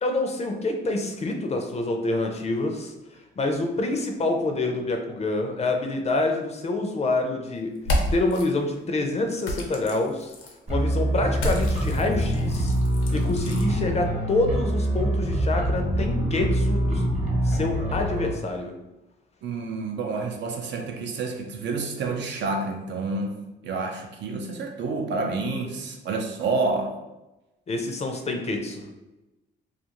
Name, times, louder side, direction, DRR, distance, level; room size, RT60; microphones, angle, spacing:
voice 1, 0.0-2.9 3.4-7.8 8.1-10.3 10.7-12.7 13.1-17.0 17.4-18.8 27.7-28.9, left 2 dB, 35° left, 4 dB, 0.4 m, -27 dB
sound 1, 7.8-8.4 9.4-10.5 11.3-13.7, left 1 dB, 80° left, 0.6 m, -30 dB
sound 2, 10.7-18.3, right 1 dB, 35° right, 0.8 m, -25 dB
voice 2, 19.4-23.4 23.6-27.0, right 3 dB, 65° right, 3 dB, 0.5 m, -29 dB
2.4 x 2.4 x 2.9 m, 1.0 s
cardioid pair, 90°, 20 cm